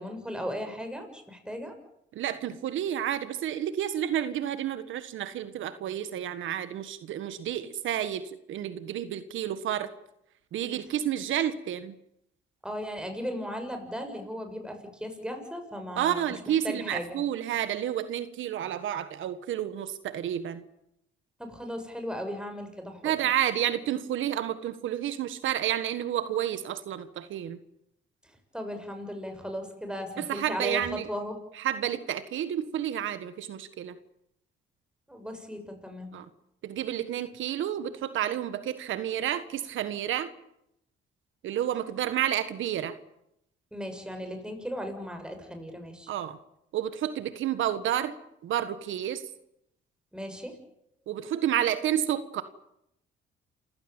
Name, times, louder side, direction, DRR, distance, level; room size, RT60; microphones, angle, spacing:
voice 1, 0.0-1.8 12.6-16.3 16.6-17.2 21.4-23.1 28.5-30.8 31.1-31.4 35.1-36.1 43.7-46.1 50.1-50.5, equal, 5° right, 5 dB, 7.0 m, -36 dB
voice 2, 2.1-9.9 10.5-11.9 16.0-20.6 23.0-27.6 30.2-31.1 31.5-33.9 36.1-36.2 36.6-40.3 41.4-42.9 46.1-46.4 46.7-48.1 48.4-49.2 51.1-52.4, right 10 dB, 80° right, 11 dB, 1.5 m, -30 dB
28.0 x 16.0 x 9.0 m, 0.80 s
cardioid pair, 90°, 20 cm